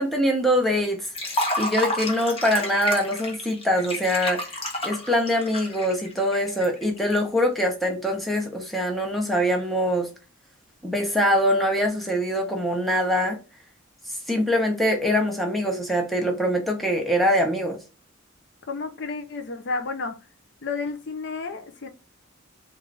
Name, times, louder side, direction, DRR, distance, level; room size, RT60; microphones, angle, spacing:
voice 1, 0.0-4.5 4.8-10.1 10.8-13.4 14.1-17.8, equal, ahead, 0.8 m, -23 dB
Liquid, 1.1-7.2, left 1 dB, 30° left, 1.0 m, -30 dB
voice 2, 18.7-20.2 20.6-21.9, left 4 dB, 55° left, 0.5 m, -31 dB
3.8 x 2.5 x 3.2 m
head